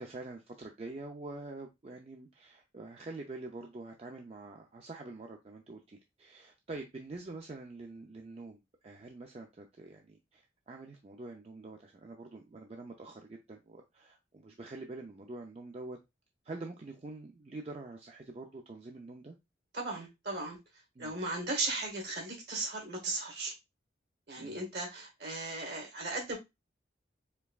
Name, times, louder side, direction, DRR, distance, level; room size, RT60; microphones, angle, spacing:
voice 1, 0.0-16.0 16.4-19.3 21.0-21.1 24.4-24.7, right 2 dB, 35° right, 0.4 m, -46 dB
voice 2, 19.7-20.6 21.0-23.5 24.3-26.4, right 2 dB, 60° right, 1.6 m, -36 dB
4.5 x 3.3 x 2.3 m
head